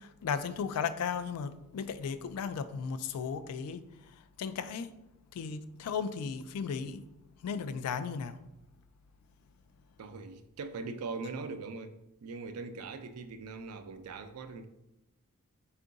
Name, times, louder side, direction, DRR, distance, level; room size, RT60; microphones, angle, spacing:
voice 1, 0.0-3.9 4.4-4.9 5.3-7.0 7.4-8.4, left 6 dB, 85° left, 0.3 m, -35 dB
voice 2, 10.0-14.7, right 4 dB, 80° right, 0.4 m, -41 dB
4.4 x 2.5 x 3.8 m
head